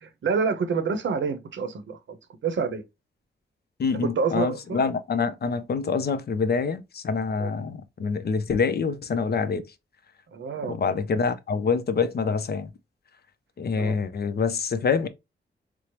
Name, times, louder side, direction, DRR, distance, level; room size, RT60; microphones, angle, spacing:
voice 1, 0.0-2.8 4.0-4.8 7.4-7.5 10.3-10.8 13.8-14.0, right 5 dB, 65° right, 0.7 m, -28 dB
voice 2, 3.8-9.6 10.7-12.7 13.6-15.1, left 5 dB, 50° left, 0.5 m, -26 dB
4.4 x 2.0 x 2.9 m
cardioid pair, 90°, 21 cm